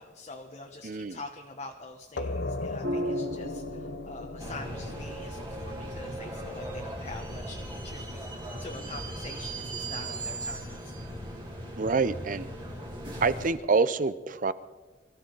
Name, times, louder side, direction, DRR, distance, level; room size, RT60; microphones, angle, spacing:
voice 1, 0.0-10.9, left 3 dB, 35° left, 2 dB, 1.1 m, -45 dB
voice 2, 0.8-1.2 11.8-12.5 13.2-14.5, right 4 dB, 45° right, 15 dB, 0.6 m, -26 dB
sound 1, 2.2-7.5, left 2 dB, 65° left, 0.8 m, -38 dB
sound 2, 2.8-11.4, equal, 75° right, 3.8 m, -41 dB
sound 3, 4.4-13.5, right 1 dB, 25° right, 2.8 m, -38 dB
24.0 x 14.0 x 3.9 m, 1.3 s
head